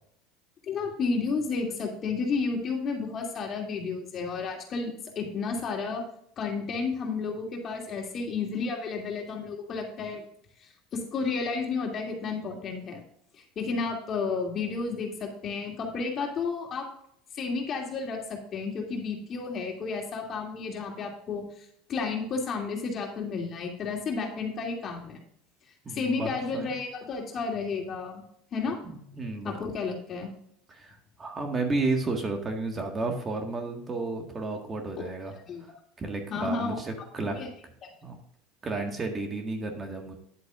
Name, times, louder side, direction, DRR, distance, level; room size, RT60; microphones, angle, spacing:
voice 1, 0.6-6.0 6.4-10.3 10.6-13.0 13.6-16.9 17.3-25.2 25.9-28.2 28.5-28.8 29.4-30.3 35.4-35.7 36.3-36.7 37.2-37.5 37.8-37.9, left 4 dB, 40° left, 1 dB, 2.7 m, -32 dB
voice 2, 25.9-26.7 28.8-29.6 30.7-35.3 36.0-37.4 38.0-38.2 38.6-40.1, right 3 dB, 25° right, 4 dB, 1.7 m, -32 dB
10.5 x 8.0 x 2.5 m, 0.69 s
supercardioid pair, 105°, 0 cm